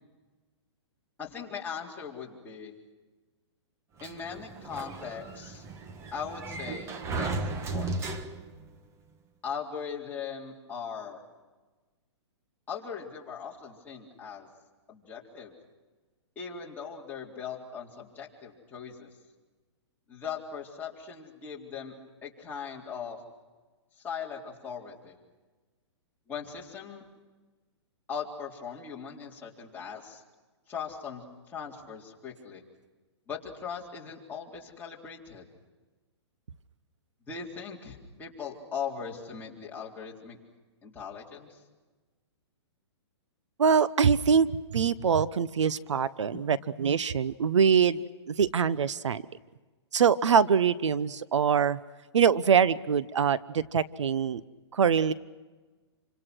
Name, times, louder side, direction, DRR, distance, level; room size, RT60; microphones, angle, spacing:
voice 1, 1.2-2.7 4.0-5.6 6.1-8.2 9.4-11.2 12.7-14.5 14.9-15.5 16.4-19.1 20.1-22.0 22.2-23.2 24.0-25.2 26.3-27.0 28.1-30.2 30.7-32.6 33.3-35.4 37.3-40.4 40.8-41.6, left 6 dB, 10° left, -4 dB, 4.1 m, -39 dB
Sliding door, 4.0-8.7, right 3 dB, 20° right, 1.4 m, -35 dB
voice 2, 43.6-44.5 44.7-48.0 48.3-49.2 49.9-51.8 52.1-54.4 54.7-55.1, right 7 dB, 90° right, 17 dB, 1.0 m, -24 dB
28.0 x 26.0 x 6.3 m, 1.3 s
hypercardioid pair, 150°, 15 cm